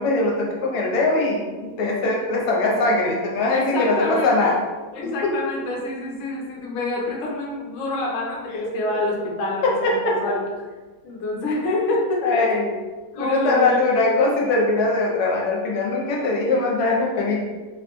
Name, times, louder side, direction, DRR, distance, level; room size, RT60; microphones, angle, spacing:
voice 1, 0.0-4.6 5.0-5.4 8.6-9.0 9.6-10.3 12.2-12.8 13.2-17.5, left 2 dB, 80° left, -1 dB, 1.1 m, -21 dB
voice 2, 3.5-4.5 4.9-10.4 11.0-12.5 13.1-14.2, left 2 dB, 60° left, -2 dB, 0.8 m, -27 dB
3.6 x 2.1 x 2.8 m, 1.3 s
omnidirectional pair, 1.8 m